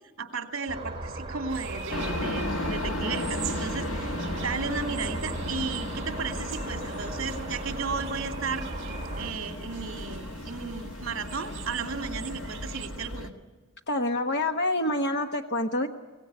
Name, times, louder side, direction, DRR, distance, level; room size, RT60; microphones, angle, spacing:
voice 1, 0.2-8.7 9.2-13.3, right 5 dB, 70° right, 4 dB, 2.7 m, -34 dB
sound 1, 0.7-9.3, right 2 dB, 25° right, 2.6 m, -37 dB
sound 2, 1.5-12.9, right 7 dB, 55° right, 2.4 m, -44 dB
sound 3, 1.9-13.3, left 1 dB, 80° left, 1.7 m, -35 dB
voice 2, 13.9-15.9, left 1 dB, 50° left, 5 dB, 1.1 m, -27 dB
25.5 x 17.5 x 9.8 m, 1.3 s
head